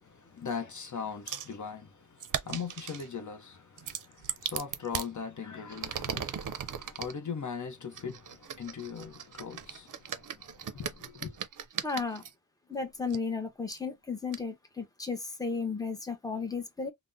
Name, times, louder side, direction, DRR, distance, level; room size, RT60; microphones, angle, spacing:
voice 1, 0.0-11.4, left 6 dB, 60° left, 0.7 m, -40 dB
sound 1, 1.3-1.5 2.2-3.1 3.8-5.1 5.7-7.1 7.9-12.3 13.1-13.2 13.7-13.8 14.3-14.4, right 8 dB, 65° right, 0.5 m, -38 dB
voice 2, 11.8-12.2 12.7-16.9, left 4 dB, 10° left, 0.8 m, -34 dB
3.4 x 2.1 x 2.5 m
wide cardioid pair, 95°, 34 cm